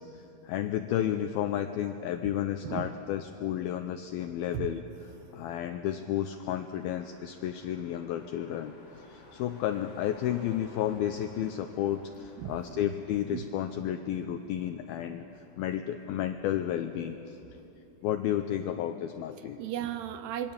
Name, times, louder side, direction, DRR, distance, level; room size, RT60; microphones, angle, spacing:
voice 1, 0.1-4.8 5.3-15.3 15.6-17.4 18.0-19.6, left 11 dB, 90° left, 8 dB, 2.1 m, -32 dB
Motor vehicle (road), 2.6-17.6, left 1 dB, 35° left, 3.4 m, -58 dB
voice 2, 12.4-12.9 13.3-13.5 19.6-20.5, right 11 dB, 80° right, 10 dB, 2.6 m, -35 dB
26.5 x 22.5 x 7.1 m, 2.9 s
omnidirectional pair, 5.1 m